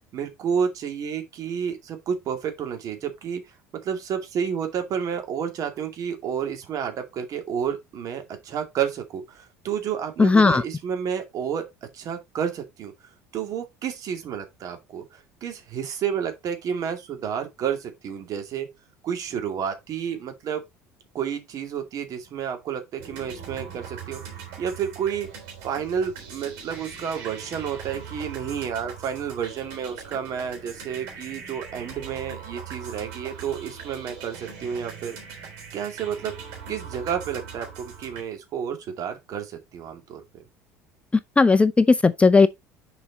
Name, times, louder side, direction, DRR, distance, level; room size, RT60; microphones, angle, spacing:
voice 1, 0.1-3.4 3.8-11.6 11.9-12.9 13.3-18.7 19.0-20.6 21.1-24.2 24.6-25.3 25.6-35.2 35.7-36.3 36.7-40.2, right 7 dB, 50° right, 2.3 m, -30 dB
voice 2, 10.2-10.6 41.4-42.5, left 4 dB, 15° left, 0.5 m, -16 dB
Meet The Fish (loop), 23.0-38.2, right 6 dB, 70° right, 3.5 m, -40 dB
6.9 x 5.0 x 4.0 m
hypercardioid pair, 70°, 8 cm